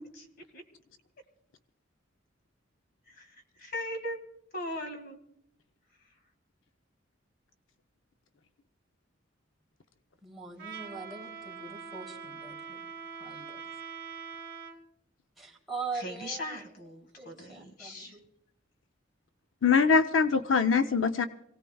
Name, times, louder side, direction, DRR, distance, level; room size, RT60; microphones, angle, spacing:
voice 1, 3.1-4.2 4.5-5.2 15.9-18.2, left 1 dB, 50° left, 6 dB, 2.1 m, -39 dB
voice 2, 10.2-12.9 13.2-13.6 15.4-16.6 17.2-18.3, right 4 dB, ahead, -3 dB, 3.0 m, -42 dB
Trumpet, 10.6-14.8, right 6 dB, 55° right, 2.6 m, -43 dB
voice 3, 19.6-21.3, left 5 dB, 75° left, 8 dB, 0.6 m, -23 dB
26.5 x 17.5 x 2.3 m, 0.77 s
head